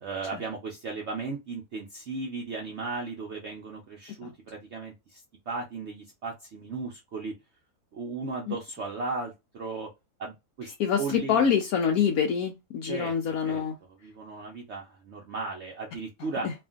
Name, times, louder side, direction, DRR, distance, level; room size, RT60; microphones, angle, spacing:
voice 1, 0.0-7.3 7.9-9.9 10.2-11.5 12.8-13.1 13.4-13.6 14.0-16.5, right 3 dB, 60° right, 0.8 m, -36 dB
voice 2, 10.8-13.7 16.4-16.5, left 7 dB, 75° left, 1.0 m, -26 dB
2.8 x 2.5 x 2.3 m
omnidirectional pair, 1.7 m